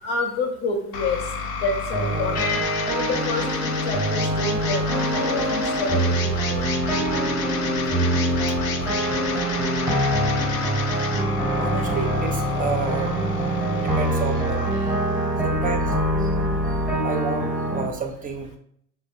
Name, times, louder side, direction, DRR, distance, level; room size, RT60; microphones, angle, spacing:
voice 1, 0.0-1.2 1.5-2.6 2.9-6.6, left 3 dB, 65° left, 3 dB, 1.0 m, -28 dB
sound 1, 0.9-16.9, left 4 dB, 90° left, 0.6 m, -31 dB
sound 2, 1.9-17.9, right 1 dB, 5° right, 0.9 m, -24 dB
sound 3, 2.3-5.1, left 6 dB, 35° left, 0.8 m, -35 dB
voice 2, 11.5-13.2 13.8-14.8 15.4-16.3 17.0-18.6, right 5 dB, 20° right, 4 dB, 0.5 m, -30 dB
5.1 x 2.1 x 2.6 m, 0.66 s
hypercardioid pair, 85°, 49 cm